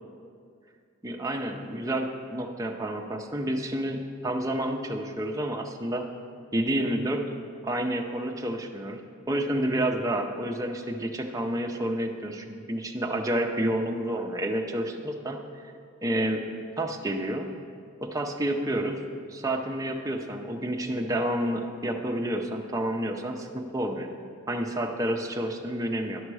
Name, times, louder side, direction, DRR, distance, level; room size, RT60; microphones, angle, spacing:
voice 1, 1.0-6.0 6.5-7.2 7.6-9.0 9.3-15.7 16.0-16.4 16.8-17.5 18.0-24.1 24.5-26.2, right 1 dB, 15° right, 1 dB, 0.5 m, -29 dB
11.0 x 6.5 x 4.7 m, 2.3 s
head